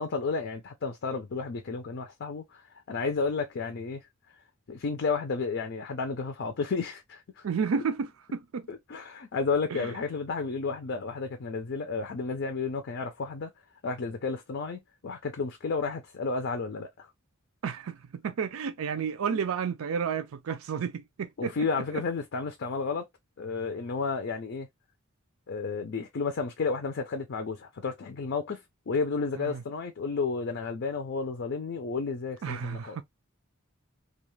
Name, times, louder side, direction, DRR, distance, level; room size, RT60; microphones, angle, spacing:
voice 1, 0.0-2.6 2.9-4.1 4.7-7.4 8.7-13.5 13.8-17.1 19.3-19.4 21.4-23.1 23.4-24.7 25.5-28.6 28.9-33.0, left 4 dB, 55° left, 0.5 m, -32 dB
voice 2, 7.4-8.7 9.7-9.9 17.6-21.5 21.9-22.0 29.4-29.6 32.4-33.0, right 6 dB, 75° right, 0.4 m, -31 dB
2.4 x 2.3 x 3.0 m
head